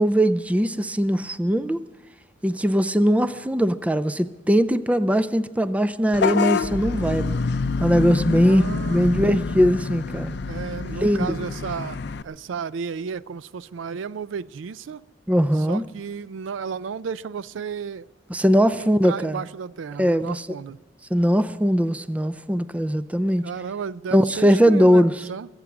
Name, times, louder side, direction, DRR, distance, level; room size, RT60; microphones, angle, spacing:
voice 1, 0.0-1.8 2.4-7.4 7.8-8.6 8.9-10.3 11.0-11.4 15.3-15.8 18.3-19.4 20.0-20.5 21.1-23.4 24.1-25.2, equal, 5° right, 0.4 m, -20 dB
Vehicle horn car horn honking / Bus, 6.1-12.2, left 4 dB, 60° left, 0.5 m, -26 dB
voice 2, 8.4-9.1 10.5-15.0 15.7-18.1 18.7-20.8 23.4-25.0 25.3-25.5, right 6 dB, 90° right, 0.4 m, -33 dB
23.0 x 8.1 x 6.0 m
head